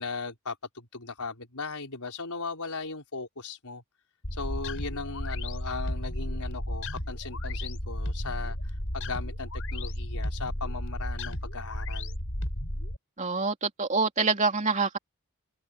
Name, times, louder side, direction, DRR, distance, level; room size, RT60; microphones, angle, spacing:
voice 1, 0.0-3.8 4.3-12.2, left 4 dB, 85° left, 4.5 m, -38 dB
sound 1, 4.2-13.0, left 1 dB, 65° left, 7.0 m, -33 dB
voice 2, 13.2-15.0, right 4 dB, 35° right, 3.0 m, -26 dB
head